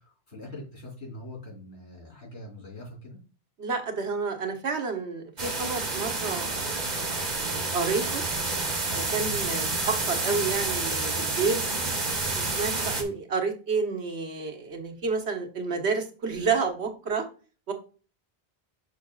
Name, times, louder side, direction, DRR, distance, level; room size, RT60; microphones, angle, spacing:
voice 1, 0.0-3.2 9.2-9.4 12.8-13.0, left 1 dB, 90° left, -3 dB, 3.8 m, -43 dB
voice 2, 3.6-8.2 8.9-11.6 12.3-17.2 17.7-17.8, right 4 dB, 90° right, 4 dB, 1.5 m, -30 dB
sound 1, 5.4-13.0, right 3 dB, 45° right, 1.3 m, -29 dB
6.5 x 6.4 x 2.3 m, 0.36 s
omnidirectional pair, 1.1 m